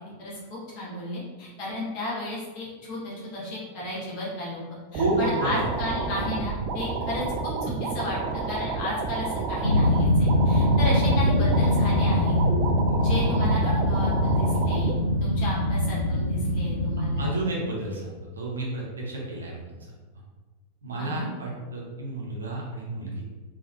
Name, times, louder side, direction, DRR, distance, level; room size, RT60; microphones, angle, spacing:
voice 1, 0.2-4.6 4.9-8.2 8.5-12.4 13.0-17.3 21.0-21.3, left 1 dB, 45° left, -6 dB, 1.5 m, -33 dB
sound 1, 4.9-14.9, right 4 dB, 40° right, 0.4 m, -30 dB
voice 2, 4.9-5.7 6.1-6.2 12.9-13.0 17.2-19.8 20.8-23.2, right 2 dB, 70° right, -3 dB, 0.9 m, -31 dB
sound 2, 9.6-17.3, left 1 dB, 85° left, 0.3 m, -23 dB
3.7 x 2.6 x 2.8 m, 1.3 s
figure-of-eight pair, 90°, 0 cm